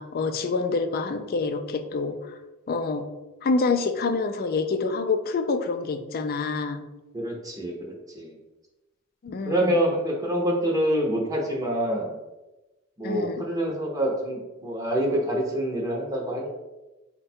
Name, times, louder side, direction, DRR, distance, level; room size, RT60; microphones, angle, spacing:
voice 1, 0.0-2.2 2.7-3.0 3.4-6.8 9.2-9.8 13.0-13.4, left 4 dB, 45° left, 8 dB, 0.4 m, -27 dB
voice 2, 7.1-8.4 9.4-12.2 13.0-16.5, right 1 dB, 15° right, -2 dB, 0.7 m, -26 dB
4.6 x 2.2 x 4.2 m, 1.1 s
head